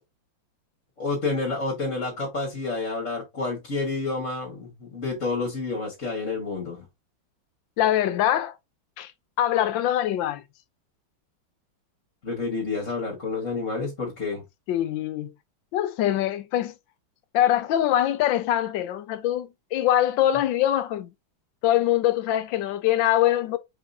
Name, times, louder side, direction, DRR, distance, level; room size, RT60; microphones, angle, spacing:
voice 1, 1.0-6.9 12.2-14.4, left 3 dB, 40° left, 1.9 m, -29 dB
voice 2, 7.8-8.6 9.0-9.1 9.4-10.4 14.7-15.3 15.7-16.8 17.3-21.1 21.6-23.6, left 12 dB, 80° left, 1.3 m, -23 dB
4.9 x 4.2 x 2.6 m
omnidirectional pair, 2.1 m